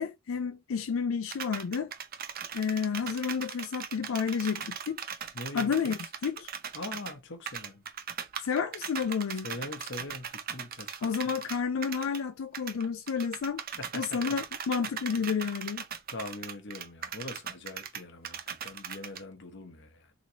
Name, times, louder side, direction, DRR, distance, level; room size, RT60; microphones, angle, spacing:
voice 1, 0.0-1.9 2.5-5.0 5.5-5.9 6.2-6.3 8.4-9.5 11.0-13.6 13.9-15.8, left 6 dB, 80° left, 0.4 m, -30 dB
sound 1, 1.3-7.1 7.5-12.2 12.5-19.2, right 8 dB, 45° right, 0.6 m, -39 dB
voice 2, 5.3-6.1 6.7-7.8 9.3-11.1 13.8-14.4 16.1-20.1, left 2 dB, 60° left, 0.9 m, -42 dB
3.9 x 2.9 x 2.8 m
head